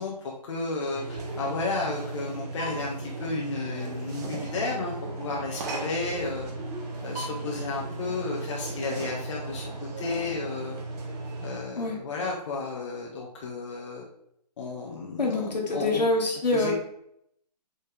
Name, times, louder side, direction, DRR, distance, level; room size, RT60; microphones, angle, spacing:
voice 1, 0.0-6.5 7.0-9.7 10.0-10.8 11.4-14.0 14.6-16.0 16.5-16.8, left 3 dB, 45° left, -2 dB, 1.4 m, -33 dB
sound 1, 0.9-11.6, right 2 dB, 25° right, 1.2 m, -36 dB
voice 2, 15.2-16.8, left 2 dB, 75° left, -1 dB, 2.3 m, -25 dB
8.6 x 4.2 x 3.5 m, 0.73 s
figure-of-eight pair, 140°, 21 cm